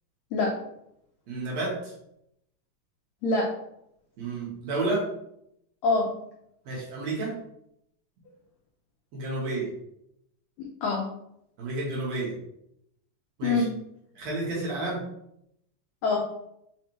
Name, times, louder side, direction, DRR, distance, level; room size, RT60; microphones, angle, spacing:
voice 1, 1.3-1.9 4.2-5.1 6.7-7.4 9.1-9.7 11.6-12.4 13.4-13.6 14.2-15.0, right 2 dB, 65° right, -4 dB, 2.0 m, -30 dB
voice 2, 10.6-11.0 13.4-13.7 16.0-16.2, left 3 dB, 85° left, 0 dB, 1.5 m, -24 dB
5.1 x 3.2 x 2.9 m, 0.77 s
omnidirectional pair, 3.8 m